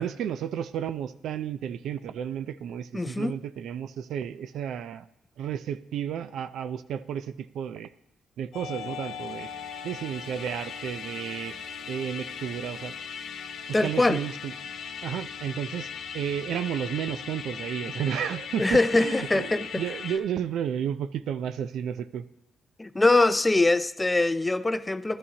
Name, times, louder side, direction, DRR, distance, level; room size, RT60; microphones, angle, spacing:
voice 1, 0.0-5.1 5.4-7.9 8.4-9.5 9.8-11.5 11.9-12.9 13.8-14.5 15.0-15.9 16.1-22.2, right 9 dB, 75° right, 0.4 m, -32 dB
voice 2, 2.9-3.3 13.7-14.2 18.6-19.8 22.8-25.2, left 2 dB, 15° left, 0.4 m, -23 dB
Musical instrument, 8.5-20.2, left 7 dB, 70° left, 0.8 m, -38 dB
12.0 x 11.0 x 2.9 m
cardioid pair, 90°, 0 cm